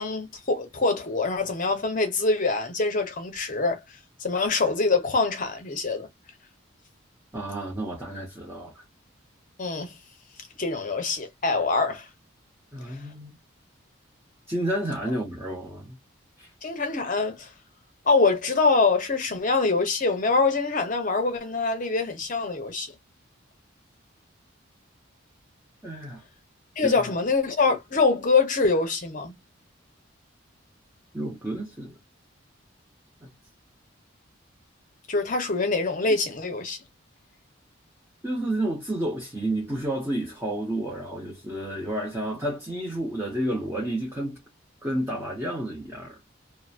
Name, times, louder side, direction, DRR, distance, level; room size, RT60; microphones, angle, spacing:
voice 1, 0.0-3.8 4.2-6.1 9.6-10.0 10.6-12.1 16.6-17.5 18.1-22.9 26.8-29.3 35.1-36.8, left 3 dB, 40° left, 0.8 m, -24 dB
voice 2, 7.3-8.8 12.7-13.3 14.5-16.0 16.4-16.5 25.8-26.2 26.8-26.9 31.1-32.0 33.2-33.3 38.2-44.4 44.8-46.2, right 1 dB, 10° right, 0.8 m, -30 dB
2.9 x 2.1 x 2.4 m
head